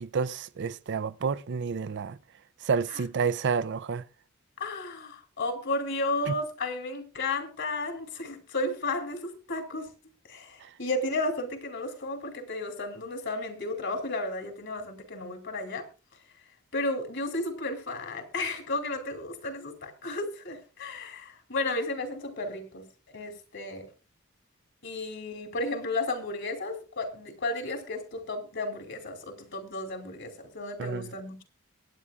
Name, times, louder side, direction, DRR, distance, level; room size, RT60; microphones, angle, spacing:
voice 1, 0.0-2.2 2.6-4.1 6.3-6.4 10.6-10.7 30.8-31.2, right 5 dB, 55° right, 0.5 m, -30 dB
voice 2, 4.6-9.9 10.3-15.9 16.7-22.9 23.1-23.9 24.8-31.4, left 2 dB, 60° left, 2.8 m, -33 dB
22.5 x 9.6 x 2.4 m
head